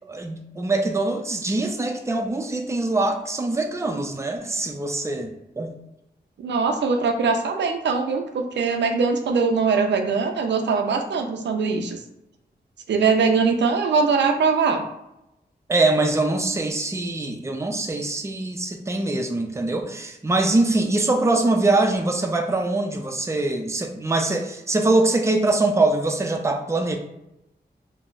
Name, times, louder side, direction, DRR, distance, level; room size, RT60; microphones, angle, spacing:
voice 1, 0.1-5.7 15.7-27.0, right 2 dB, 15° right, 4 dB, 0.4 m, -23 dB
voice 2, 6.4-12.0 12.9-14.9, right 5 dB, 90° right, 4 dB, 0.4 m, -21 dB
3.8 x 2.0 x 2.4 m, 0.87 s
wide cardioid pair, 70°, 18 cm